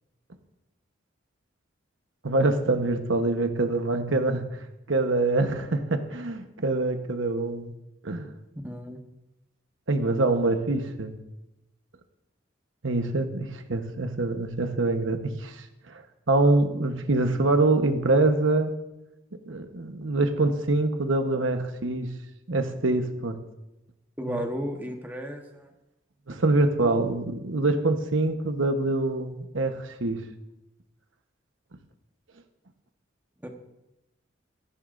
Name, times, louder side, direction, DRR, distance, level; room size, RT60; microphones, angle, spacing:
voice 1, 2.2-4.4 4.9-7.7 8.0-8.3 9.9-11.1 12.8-16.0 16.3-18.7 19.5-22.1 22.5-23.4 24.3-24.4 26.3-30.2, right 2 dB, 75° right, 6 dB, 1.1 m, -25 dB
voice 2, 8.5-9.0 24.2-25.7 33.4-33.5, equal, 10° right, 2 dB, 1.1 m, -34 dB
16.5 x 14.0 x 2.6 m, 0.94 s
head